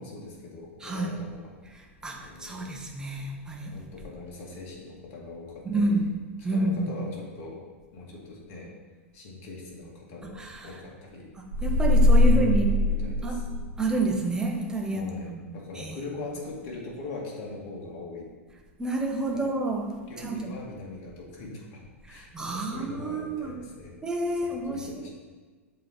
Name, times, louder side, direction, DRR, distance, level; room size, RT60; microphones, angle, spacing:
voice 1, 0.0-1.5 2.2-2.8 3.7-6.1 6.5-7.6 7.9-8.7 9.1-11.3 12.3-13.4 14.9-18.3 19.3-19.5 20.1-24.0 24.6-25.1, left 3 dB, 45° left, -2 dB, 1.7 m, -41 dB
voice 2, 0.8-1.2 1.7-3.8 5.6-6.1 6.4-6.9 10.2-10.7 11.6-12.8 13.2-13.4 13.8-15.4 15.7-16.0 18.8-20.5 22.3-23.6 24.0-25.1, right 2 dB, 10° right, 1 dB, 0.9 m, -29 dB
sound 1, 11.5-13.9, left 2 dB, 80° right, 0.9 m, -21 dB
7.4 x 3.1 x 4.1 m, 1.4 s
figure-of-eight pair, 95°, 7 cm